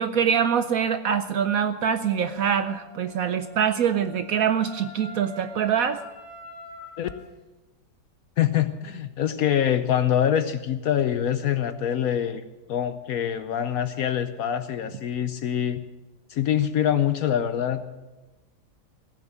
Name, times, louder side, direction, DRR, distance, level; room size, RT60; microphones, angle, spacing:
voice 1, 0.0-6.0, right 8 dB, 70° right, 11 dB, 0.9 m, -24 dB
Wind instrument woodwind instrument, 2.5-7.2, left 2 dB, 85° right, 5.2 m, -45 dB
voice 2, 8.4-12.4 12.7-15.8 16.3-17.9, left 10 dB, 65° left, 11 dB, 0.9 m, -24 dB
16.5 x 7.1 x 8.0 m, 1.1 s
omnidirectional pair, 1.9 m